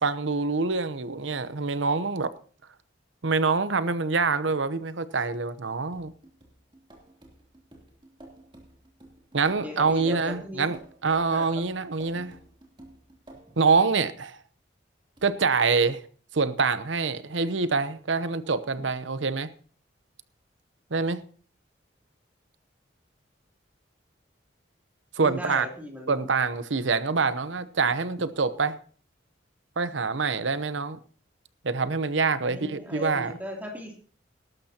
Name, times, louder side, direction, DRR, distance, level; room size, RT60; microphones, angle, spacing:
voice 1, 0.0-2.3 3.2-6.1 9.3-12.4 13.6-14.4 15.2-16.0 16.3-19.5 20.9-21.2 25.2-25.7 26.1-28.8 29.8-31.0 31.6-33.3, right 4 dB, 80° right, 0.8 m, -25 dB
sound 1, 5.9-13.7 15.2-15.3, right 1 dB, 25° right, 3.0 m, -52 dB
voice 2, 9.6-10.7 11.3-11.7 25.2-26.3 32.4-33.9, equal, 10° right, 3.0 m, -37 dB
19.5 x 12.0 x 2.9 m
head